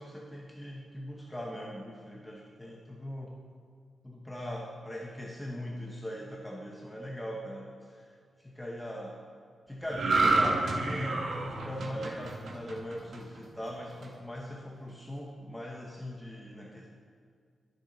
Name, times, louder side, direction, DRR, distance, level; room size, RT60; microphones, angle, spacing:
voice 1, 0.0-3.4 4.0-8.1 8.4-9.2 9.7-16.9, equal, 5° left, -2 dB, 0.7 m, -40 dB
sound 1, 9.9-13.4 13.8-14.0, right 3 dB, 75° right, 0.9 m, -29 dB
11.0 x 6.5 x 3.8 m, 2.1 s
wide cardioid pair, 145°, 0 cm